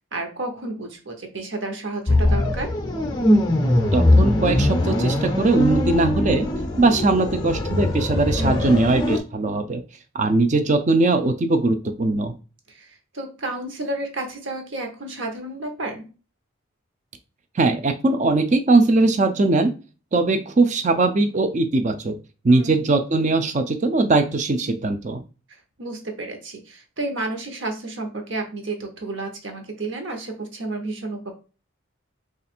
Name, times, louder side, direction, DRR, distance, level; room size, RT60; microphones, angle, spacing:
voice 1, 0.0-2.7 8.4-8.8 12.7-16.1 22.5-22.8 25.8-31.3, right 2 dB, 65° right, 4 dB, 0.9 m, -31 dB
sound 1, 2.1-9.2, left 1 dB, 20° left, 0.5 m, -21 dB
voice 2, 3.9-6.5 6.8-9.8 10.1-12.3 17.6-19.7 20.1-22.2 22.4-25.2, right 2 dB, 35° right, 9 dB, 0.4 m, -20 dB
3.2 x 2.5 x 4.3 m, 0.34 s
head